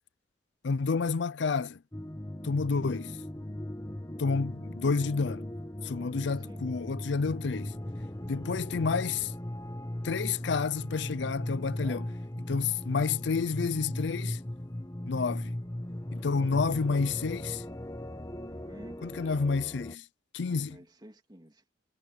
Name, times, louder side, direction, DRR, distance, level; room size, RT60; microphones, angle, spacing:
voice 1, 0.6-1.8 2.4-3.2 4.2-5.5 5.8-7.7 8.3-9.3 10.0-12.0 12.4-14.4 15.1-15.5 16.1-17.6 19.0-20.0 20.3-20.8, left 4 dB, 65° left, 0.5 m, -29 dB
sound 1, 1.9-20.0, left 1 dB, 20° left, 1.2 m, -38 dB
voice 2, 6.3-6.7 11.8-12.0 18.5-19.0 20.4-21.6, equal, 20° right, 2.8 m, -51 dB
head